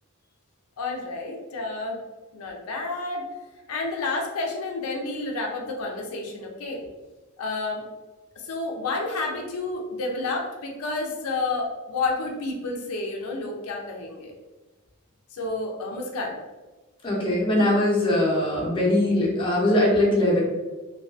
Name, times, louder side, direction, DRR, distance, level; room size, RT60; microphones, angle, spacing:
voice 1, 0.8-2.0 2.3-3.2 3.7-6.8 7.4-7.8 8.4-14.3 15.3-16.4, left 3 dB, 90° left, 1 dB, 0.4 m, -30 dB
voice 2, 17.0-20.4, left 1 dB, 25° left, -4 dB, 0.7 m, -21 dB
2.4 x 2.3 x 2.3 m, 1.2 s
head